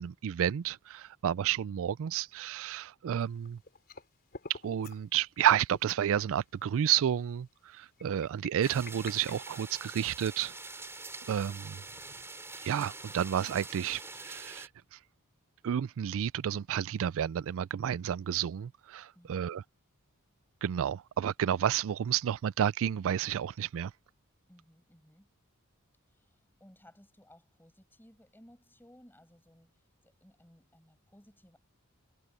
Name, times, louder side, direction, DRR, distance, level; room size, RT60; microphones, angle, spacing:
voice 1, 0.0-3.6 4.5-10.5 11.3-11.8 12.6-14.7 15.6-19.6 20.6-23.9, right 9 dB, 65° right, 0.3 m, -31 dB
sound 1, 3.2-4.1 4.3-5.0 5.4-5.5 5.7-6.0 6.6-6.7 8.0-10.1, left 4 dB, 45° left, 3.9 m, -48 dB
sound 2, 8.6-14.7, right 3 dB, 10° right, 3.7 m, -45 dB
voice 2, 19.1-19.6 24.5-25.3 26.1-31.6, equal, 10° left, 7.6 m, -60 dB
head